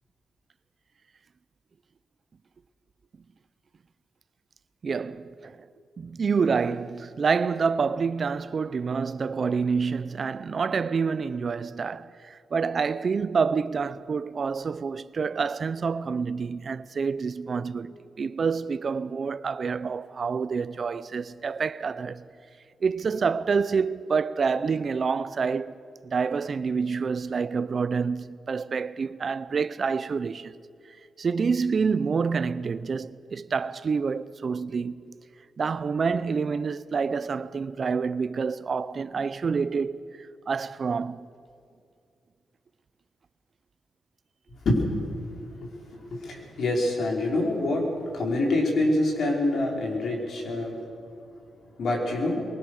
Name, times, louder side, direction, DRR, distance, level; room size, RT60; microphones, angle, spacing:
voice 1, 4.8-5.6 6.0-22.2 22.8-25.7 26.0-30.5 31.2-35.1 35.6-40.0 40.5-41.3, right 5 dB, 45° right, 0.6 m, -27 dB
voice 2, 45.6-47.9 48.1-50.7 51.8-52.5, left 2 dB, 65° left, 5.2 m, -26 dB
23.5 x 23.0 x 6.5 m
cardioid pair, 110°, 0 cm